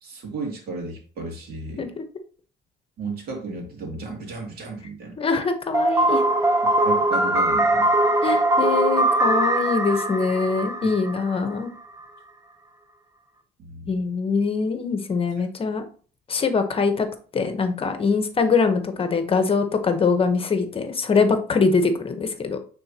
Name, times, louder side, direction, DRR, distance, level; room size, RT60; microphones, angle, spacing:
voice 1, 0.0-1.9 3.0-5.2 6.6-7.9 10.8-10.9 13.6-14.0, right 3 dB, 65° right, 1 dB, 2.5 m, -34 dB
voice 2, 5.2-6.2 8.2-11.7 13.9-15.8 16.3-17.1 17.3-22.6, left 4 dB, 35° left, 7 dB, 1.0 m, -23 dB
sound 1, 5.7-11.6, right 1 dB, 20° right, 0.8 m, -21 dB
8.7 x 4.0 x 2.9 m, 0.40 s
cardioid pair, 110°, 17 cm